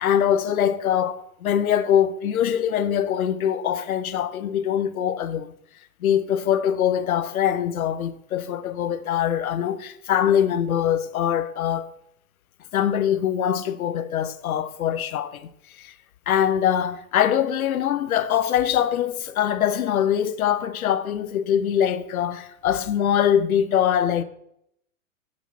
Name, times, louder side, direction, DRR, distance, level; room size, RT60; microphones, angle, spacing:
voice 1, 0.0-5.5 6.0-11.9 12.7-15.5 15.8-15.9 16.3-24.2, left 9 dB, 85° left, 0.8 m, -23 dB
7.0 x 6.2 x 5.7 m
hypercardioid pair, 115°, 42 cm